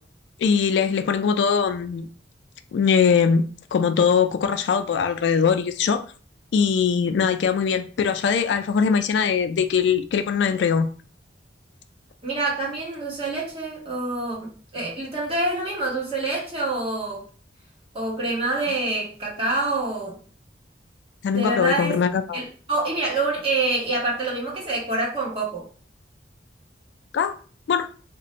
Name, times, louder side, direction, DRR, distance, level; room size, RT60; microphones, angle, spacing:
voice 1, 0.4-2.1 2.7-3.4 3.7-6.0 6.5-10.9 21.2-22.4 27.1-27.3 27.7-27.9, left 6 dB, 75° left, 0.3 m, -21 dB
voice 2, 12.2-17.2 17.9-20.2 21.3-21.9 22.3-25.7, right 2 dB, 30° right, 1.2 m, -26 dB
2.5 x 2.1 x 3.8 m
head